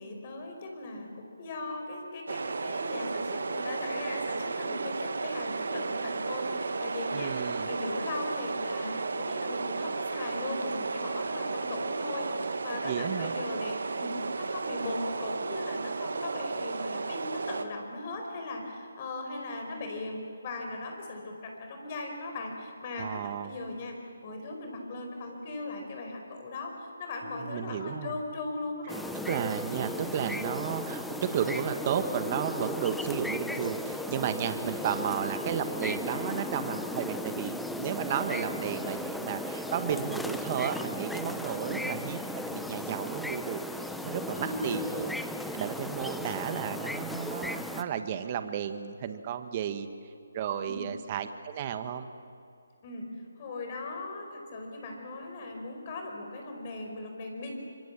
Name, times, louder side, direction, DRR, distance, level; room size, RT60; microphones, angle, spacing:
voice 1, 0.0-7.4 7.6-23.9 24.2-29.0 31.1-31.3 34.7-34.9 41.5-41.8 44.3-44.9 50.6-50.8 52.8-53.1 53.4-57.5, left 2 dB, 35° left, 2 dB, 5.1 m, -38 dB
sound 1, 2.3-17.6, right 4 dB, 70° right, 1.5 m, -33 dB
voice 2, 7.1-7.7 12.8-13.3 23.0-23.6 27.4-28.1 29.3-42.2 42.5-45.1 45.5-49.9 50.3-52.1, right 8 dB, 30° right, 9 dB, 1.3 m, -33 dB
sound 2, 28.9-47.8, left 1 dB, ahead, 0.7 m, -36 dB
26.0 x 23.0 x 7.3 m, 2.5 s
figure-of-eight pair, 160°, 0 cm